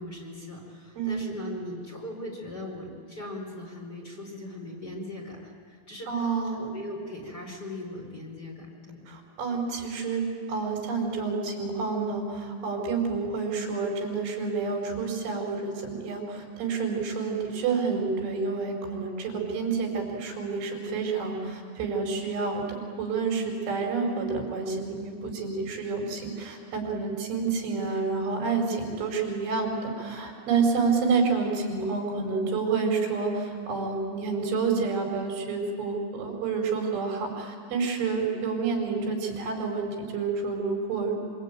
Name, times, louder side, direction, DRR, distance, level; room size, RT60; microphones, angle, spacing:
voice 1, 0.0-6.1 6.6-9.0, left 1 dB, 20° left, -2 dB, 4.8 m, -39 dB
voice 2, 6.1-6.7 9.1-41.2, right 4 dB, 85° right, 0 dB, 6.9 m, -29 dB
26.0 x 25.0 x 9.1 m, 2.2 s
omnidirectional pair, 5.3 m